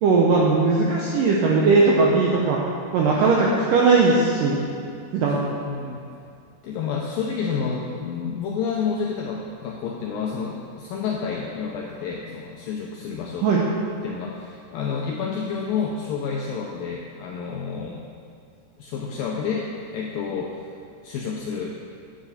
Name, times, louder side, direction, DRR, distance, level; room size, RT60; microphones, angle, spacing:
voice 1, 0.0-2.6 2.9-4.6 5.1-5.4 13.4-13.6, right 4 dB, 80° right, -3 dB, 1.9 m, -18 dB
voice 2, 5.3-6.1 6.6-13.5 14.0-18.0 18.8-20.6 21.0-21.8, left 6 dB, 85° left, -1 dB, 2.0 m, -29 dB
10.5 x 8.9 x 4.2 m, 2.4 s
omnidirectional pair, 5.0 m